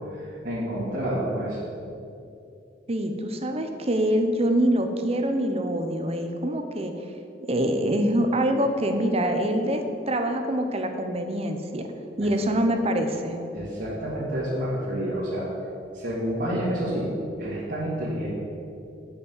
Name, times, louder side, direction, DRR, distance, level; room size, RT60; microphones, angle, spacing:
voice 1, 0.1-1.6 12.2-12.3 13.5-15.5 15.9-17.1 17.4-18.3, right 1 dB, 55° right, -10 dB, 2.2 m, -29 dB
voice 2, 2.9-6.9 7.5-11.9 12.2-13.4, right 1 dB, 35° right, 6 dB, 0.9 m, -25 dB
8.2 x 6.1 x 8.0 m, 2.7 s
head